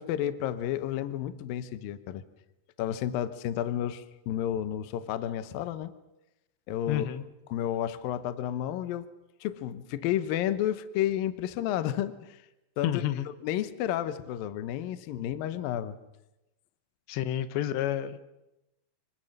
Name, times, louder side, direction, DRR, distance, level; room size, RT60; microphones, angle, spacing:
voice 1, 0.0-2.2 2.8-5.9 6.7-7.1 7.5-9.0 9.4-12.4 12.8-13.0 13.4-16.0, left 11 dB, 70° left, 13 dB, 2.4 m, -31 dB
voice 2, 6.9-7.2 12.8-13.3 17.1-18.2, left 11 dB, 85° left, 12 dB, 3.3 m, -29 dB
25.5 x 25.0 x 6.7 m, 0.95 s
omnidirectional pair, 4.9 m